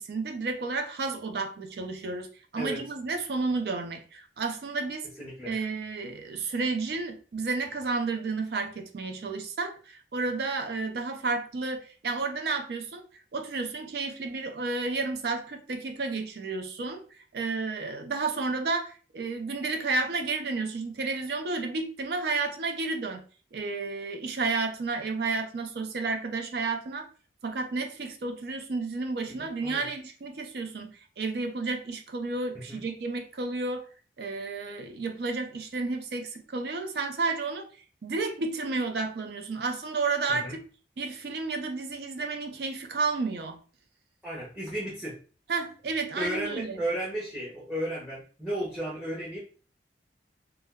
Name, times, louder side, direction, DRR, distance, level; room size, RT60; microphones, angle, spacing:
voice 1, 0.0-5.1 5.4-13.1 13.3-17.0 17.3-23.3 23.5-27.1 27.4-33.9 34.2-37.7 38.0-40.6 41.0-43.6 45.5-46.8, right 3 dB, 60° right, 5 dB, 0.4 m, -31 dB
voice 2, 5.2-5.5 29.3-29.9 32.7-32.8 40.3-40.6 44.2-45.2 46.2-49.4, right 1 dB, 5° right, -5 dB, 0.6 m, -34 dB
2.2 x 2.1 x 3.4 m, 0.38 s
head